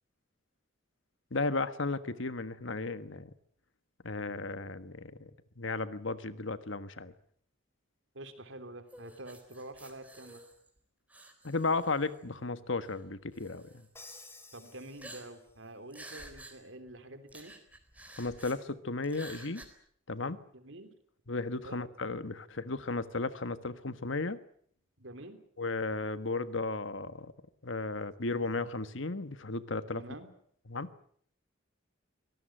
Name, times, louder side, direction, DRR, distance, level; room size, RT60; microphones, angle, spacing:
voice 1, 1.3-3.3 4.0-5.3 5.6-7.1 11.4-13.9 18.2-19.6 20.1-20.4 21.3-24.4 25.6-27.3 27.6-30.0 30.7-30.9, left 3 dB, 70° left, 13 dB, 1.5 m, -34 dB
voice 2, 8.1-10.4 14.5-17.6 20.5-20.9 21.6-21.8 25.0-25.4 29.9-30.3, right 1 dB, 75° right, 9 dB, 3.6 m, -47 dB
sound 1, 8.9-10.8 11.1-12.2 12.8-13.0 13.3-13.9 15.0-15.6 15.9-16.5 16.9-17.0 17.3-18.6 19.0-19.6, right 1 dB, 10° right, 3.9 m, -51 dB
Crash cymbal, 13.9-15.7, left 3 dB, 15° left, 3.1 m, -53 dB
25.0 x 18.5 x 9.0 m, 0.63 s
head